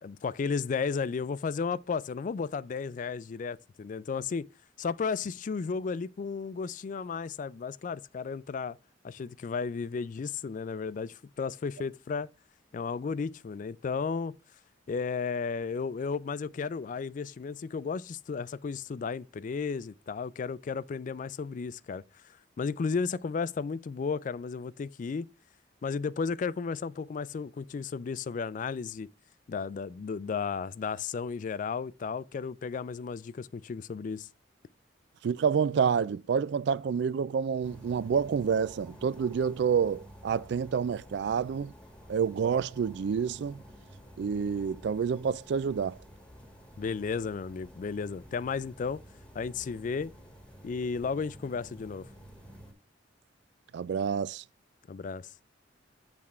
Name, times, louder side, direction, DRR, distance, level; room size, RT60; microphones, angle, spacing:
voice 1, 0.0-4.5 4.8-8.8 9.0-12.3 12.7-14.3 14.9-22.0 22.6-25.3 25.8-29.1 29.5-34.3 46.8-49.0 49.3-50.1 50.6-52.1 54.9-55.3, left 5 dB, 40° left, 0.3 m, -34 dB
voice 2, 35.2-41.7 42.1-43.6 44.2-46.0 53.7-54.4, right 6 dB, 65° right, 0.3 m, -28 dB
sound 1, 37.6-52.7, equal, 5° left, 1.5 m, -51 dB
8.5 x 3.6 x 4.3 m
head